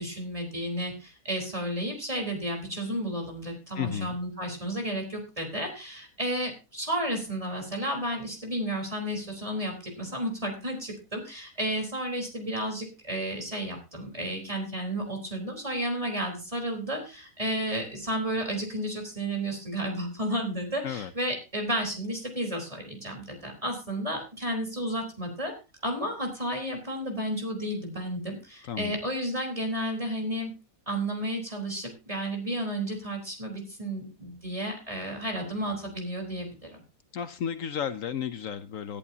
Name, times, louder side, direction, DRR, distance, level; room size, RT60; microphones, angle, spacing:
voice 1, 0.0-25.5 25.8-30.5 30.9-36.8, right 1 dB, 25° right, 2 dB, 4.1 m, -32 dB
voice 2, 3.8-4.2 20.8-21.1 28.7-29.0 37.1-39.0, left 8 dB, 70° left, 11 dB, 1.1 m, -33 dB
19.0 x 11.0 x 2.8 m, 0.28 s
omnidirectional pair, 1.5 m